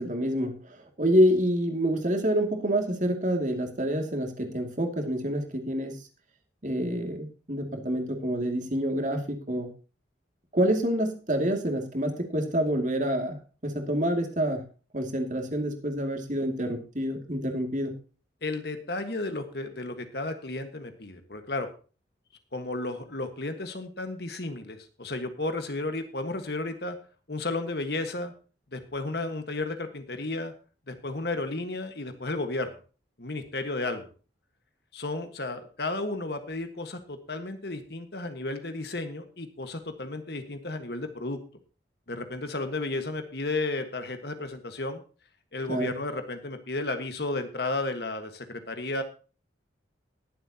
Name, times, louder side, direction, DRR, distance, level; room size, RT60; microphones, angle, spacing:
voice 1, 0.0-5.9 6.6-9.7 10.5-13.4 13.6-14.6 14.9-17.9 45.7-45.9, equal, 40° right, 4 dB, 2.4 m, -27 dB
voice 2, 18.4-21.7 22.5-27.0 27.3-28.3 28.7-30.5 30.9-32.8 33.2-34.1 34.9-41.4 42.1-45.0 45.5-49.0, left 2 dB, 55° left, 7 dB, 1.5 m, -33 dB
20.5 x 7.8 x 2.9 m, 0.36 s
head